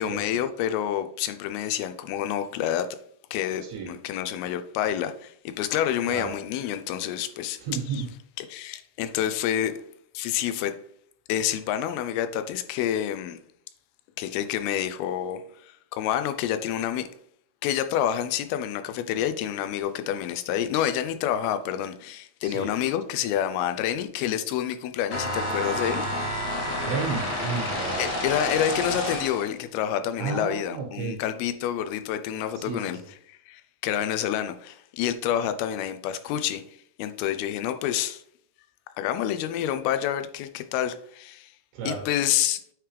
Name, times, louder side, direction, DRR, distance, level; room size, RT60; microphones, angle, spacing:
voice 1, 0.0-2.9 3.3-7.6 7.9-8.0 8.4-9.8 10.1-10.8 11.3-13.4 14.2-17.1 17.6-26.4 28.0-33.0 33.3-36.6 37.0-38.2 39.0-41.5 41.9-42.6, left 10 dB, 85° left, 2.5 m, -28 dB
voice 2, 6.1-6.4 7.6-8.1 22.4-22.7 26.7-28.6 30.2-31.2 32.6-33.0 41.7-42.0, right 5 dB, 85° right, 3.1 m, -33 dB
sound 1, 25.1-29.5, left 1 dB, 65° left, 2.3 m, -29 dB
9.1 x 3.1 x 3.3 m
omnidirectional pair, 4.4 m